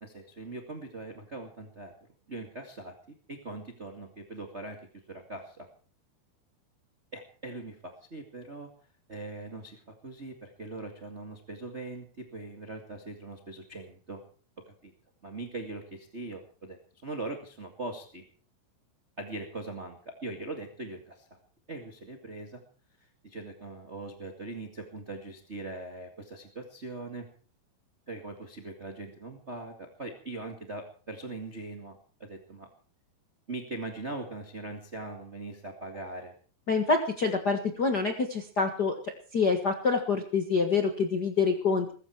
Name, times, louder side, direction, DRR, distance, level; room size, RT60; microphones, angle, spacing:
voice 1, 0.0-1.9 2.3-4.8 5.1-5.7 7.1-8.7 9.1-14.2 14.7-14.9 15.2-18.2 19.2-21.4 21.7-22.6 23.2-27.3 28.1-32.7 33.5-36.3, right 2 dB, 25° right, 4 dB, 1.6 m, -41 dB
voice 2, 36.7-39.0 39.3-41.9, left 4 dB, 85° left, 5 dB, 0.9 m, -26 dB
21.5 x 14.0 x 4.5 m, 0.41 s
omnidirectional pair, 4.5 m